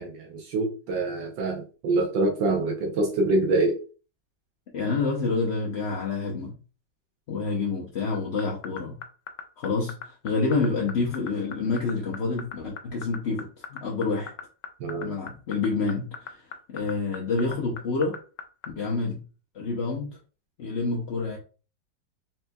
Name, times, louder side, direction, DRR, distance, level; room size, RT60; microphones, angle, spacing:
voice 1, 0.0-3.8 14.8-15.1, right 2 dB, 85° right, 0 dB, 1.5 m, -25 dB
voice 2, 4.7-6.6 7.3-9.0 9.6-14.3 15.0-18.1 18.8-19.2 19.5-20.2 20.6-21.4, left 4 dB, 55° left, -3 dB, 0.7 m, -28 dB
sound 1, 8.1-18.7, left 7 dB, 80° left, 1.3 m, -37 dB
4.2 x 3.4 x 2.2 m, 0.35 s
omnidirectional pair, 1.9 m